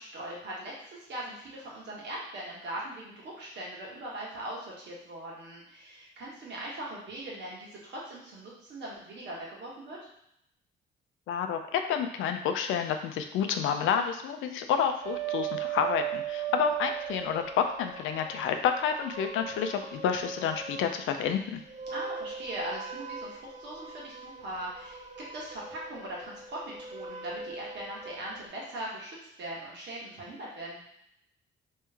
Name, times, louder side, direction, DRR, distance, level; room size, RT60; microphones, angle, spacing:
voice 1, 0.0-10.0 16.5-16.6 21.9-25.0 25.3-30.8, right 1 dB, 65° right, -4 dB, 1.5 m, -40 dB
voice 2, 11.3-21.6, left 8 dB, 85° left, 6 dB, 0.5 m, -29 dB
sound 1, 15.0-21.1 21.6-28.5, right 8 dB, 35° right, 0.5 m, -39 dB
3.2 x 3.1 x 3.5 m, 0.76 s
cardioid pair, 90°, 20 cm